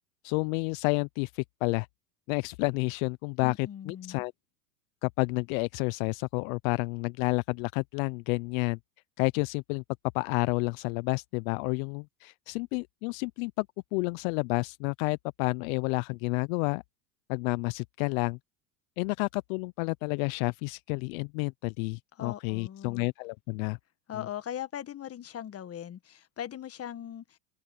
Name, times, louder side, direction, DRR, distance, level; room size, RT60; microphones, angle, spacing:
voice 1, 0.2-1.9 2.3-4.3 5.0-8.8 9.2-9.8 10.1-13.7 13.9-16.8 17.3-18.4 19.0-23.8 24.1-24.3, left 30 dB, 55° left, 0.7 m, -30 dB
voice 2, 3.4-4.2 22.2-23.1 24.1-27.4, left 10 dB, 30° left, 1.6 m, -40 dB
open air
hypercardioid pair, 95°, 48 cm